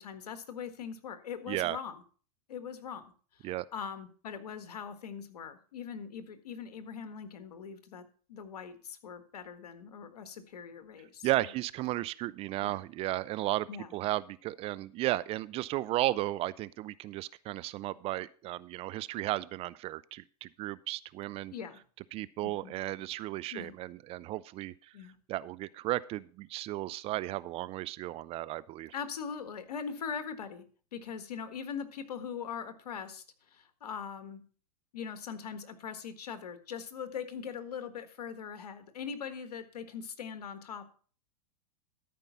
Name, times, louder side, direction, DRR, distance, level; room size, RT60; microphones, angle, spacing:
voice 1, 0.0-2.0 2.5-8.0 8.3-11.3 12.6-12.8 13.7-13.9 21.5-21.8 22.4-22.7 23.5-23.8 24.9-25.1 28.9-30.6 30.9-34.4 34.9-40.9, left 7 dB, 80° left, 9 dB, 1.6 m, -41 dB
voice 2, 1.5-1.8 3.4-3.7 11.2-21.5 22.1-24.9 25.3-28.9, right 16 dB, 30° right, 18 dB, 0.4 m, -34 dB
13.0 x 5.3 x 5.7 m, 0.42 s
hypercardioid pair, 115°, 20 cm